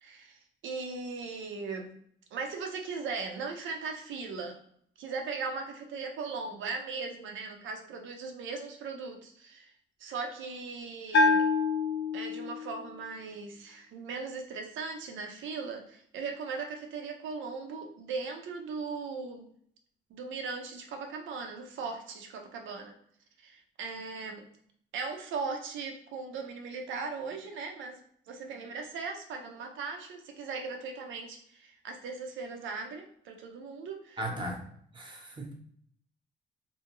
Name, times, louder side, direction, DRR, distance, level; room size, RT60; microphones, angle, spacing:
voice 1, 0.0-1.9 2.3-4.6 5.0-9.7 10.0-11.5 12.1-19.5 20.1-22.9 23.4-24.4 24.9-34.2, right 4 dB, 75° right, 3 dB, 0.6 m, -38 dB
Bell, 11.1-12.8, left 3 dB, 65° left, 0.4 m, -26 dB
voice 2, 34.2-34.7 34.9-35.5, right 1 dB, 25° right, 1 dB, 0.9 m, -36 dB
2.7 x 2.3 x 3.0 m, 0.65 s
cardioid pair, 90°, 20 cm